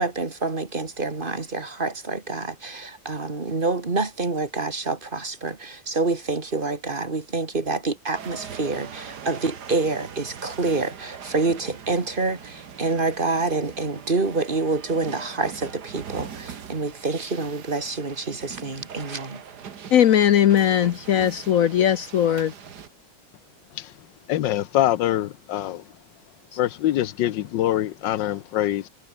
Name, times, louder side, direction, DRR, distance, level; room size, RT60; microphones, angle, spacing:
voice 1, 0.0-19.4, right 3 dB, 30° right, 2.3 m, -27 dB
sound 1, 8.1-22.9, right 7 dB, 60° right, 2.0 m, -41 dB
voice 2, 19.9-22.5, left 10 dB, 65° left, 0.9 m, -19 dB
voice 3, 24.3-25.8 26.6-28.9, left 13 dB, 80° left, 1.4 m, -24 dB
omnidirectional pair, 2.0 m